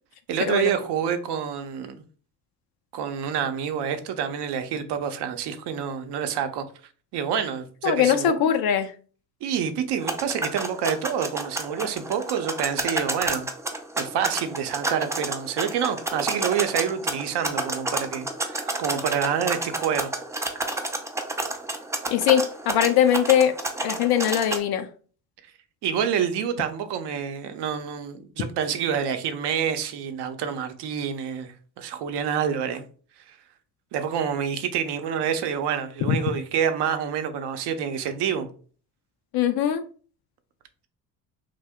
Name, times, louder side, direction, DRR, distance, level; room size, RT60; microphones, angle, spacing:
voice 1, 0.3-2.0 2.9-6.7 7.1-8.5 9.4-13.5 14.0-20.1 25.8-32.8 33.3-33.4 33.9-38.5, right 8 dB, 60° right, 0.7 m, -27 dB
voice 2, 7.8-8.9 22.1-23.5 23.8-24.9 36.0-36.2 39.3-39.8, left 9 dB, 55° left, 0.5 m, -21 dB
sound 1, 10.0-24.6, right 2 dB, 5° right, 0.3 m, -30 dB
2.7 x 2.1 x 3.4 m
hypercardioid pair, 55°, 47 cm